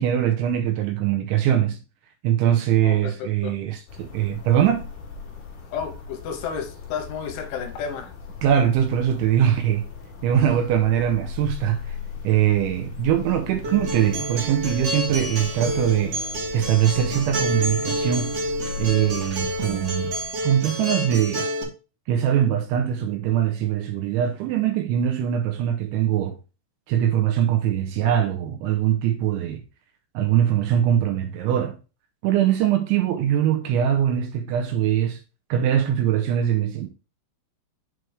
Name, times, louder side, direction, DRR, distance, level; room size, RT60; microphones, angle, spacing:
voice 1, 0.0-1.8 2.2-4.9 8.4-9.8 10.2-12.0 12.2-16.2 16.5-18.4 18.8-20.1 20.4-21.4 22.1-26.4 26.9-29.6 30.1-31.8 32.2-35.2 35.5-36.9, right 10 dB, 80° right, 2.9 m, -22 dB
voice 2, 2.8-3.5 5.7-8.1, left 7 dB, 75° left, 3.2 m, -32 dB
sound 1, 3.9-20.5, left 5 dB, 60° left, 2.2 m, -39 dB
Acoustic guitar, 13.6-21.6, right 1 dB, 60° right, 1.7 m, -29 dB
7.7 x 3.3 x 4.7 m
omnidirectional pair, 5.8 m